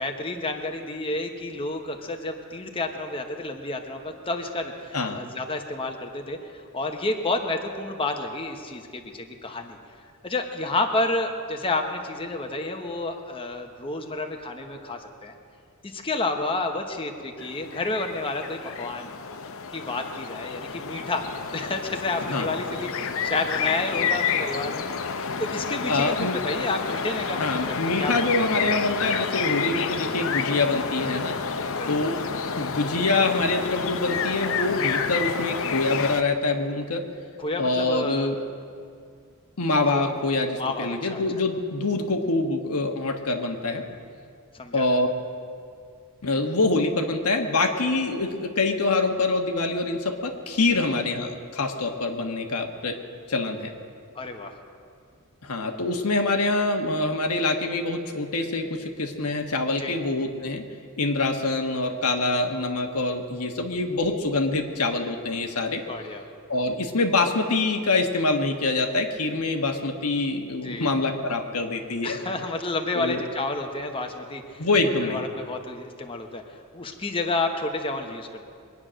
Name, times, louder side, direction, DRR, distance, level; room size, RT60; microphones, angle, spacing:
voice 1, 0.0-6.4 6.7-9.8 10.2-15.3 15.8-19.1 19.7-24.8 25.4-28.5 31.8-32.0 37.4-38.3 39.9-40.1 40.6-41.2 44.5-44.8 50.8-50.9 54.1-54.6 59.8-60.0 65.9-66.2 70.6-70.9 72.0-74.6 75.0-76.4 76.7-78.4, left 2 dB, 25° left, 3 dB, 1.0 m, -30 dB
sound 1, 17.4-36.2, left 6 dB, 65° left, 0.7 m, -29 dB
voice 2, 25.9-26.4 27.4-31.4 31.9-32.2 32.6-37.0 37.6-38.4 39.6-43.9 44.7-45.1 46.2-53.0 53.3-53.7 55.4-60.7 61.0-65.8 66.5-72.2 72.9-73.2 74.6-75.2, left 2 dB, 85° left, 3 dB, 1.4 m, -25 dB
23.0 x 9.6 x 6.3 m, 2.3 s
head